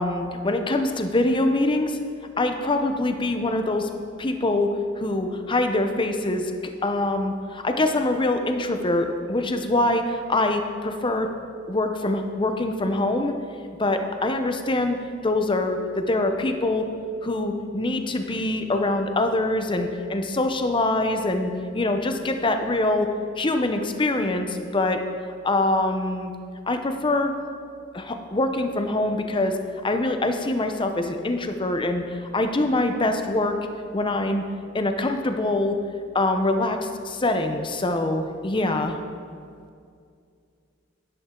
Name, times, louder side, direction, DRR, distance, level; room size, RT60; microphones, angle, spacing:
voice 1, 0.0-2.0 2.4-3.9 4.2-6.5 6.8-11.3 11.7-13.3 13.8-15.0 15.2-16.9 17.2-23.1 23.4-25.0 25.4-26.3 26.7-27.3 27.9-29.6 29.8-33.6 33.9-34.4 34.7-35.8 36.1-39.0, left 2 dB, 25° left, 6 dB, 0.7 m, -24 dB
11.0 x 10.5 x 3.8 m, 2.3 s
head